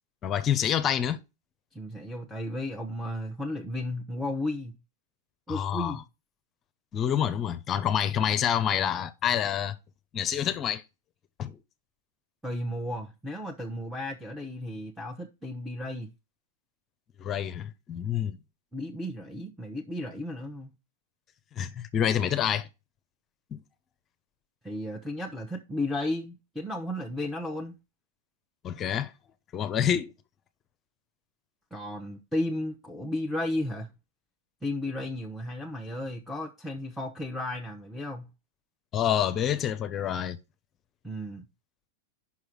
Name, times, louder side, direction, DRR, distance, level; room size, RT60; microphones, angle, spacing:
voice 1, 0.2-1.2 5.5-6.0 6.9-9.7 10.1-10.8 11.4-11.5 17.2-18.4 21.6-22.7 23.5-23.6 28.6-29.1 29.5-30.1 38.9-40.4, left 9 dB, 30° left, 0.7 m, -27 dB
voice 2, 1.7-4.8 5.5-6.0 12.4-16.1 18.7-20.7 24.6-27.8 31.7-33.9 34.6-38.3 41.0-41.5, left 1 dB, ahead, 1.1 m, -34 dB
5.8 x 4.8 x 6.0 m
hypercardioid pair, 110°, 0 cm